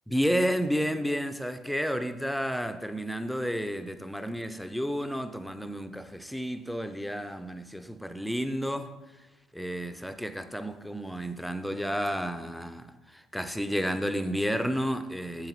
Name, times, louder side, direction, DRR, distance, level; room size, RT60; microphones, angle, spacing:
voice 1, 0.1-8.9 9.5-15.5, equal, ahead, 0.7 m, -31 dB
8.0 x 7.9 x 4.1 m
figure-of-eight pair, 50°, 0 cm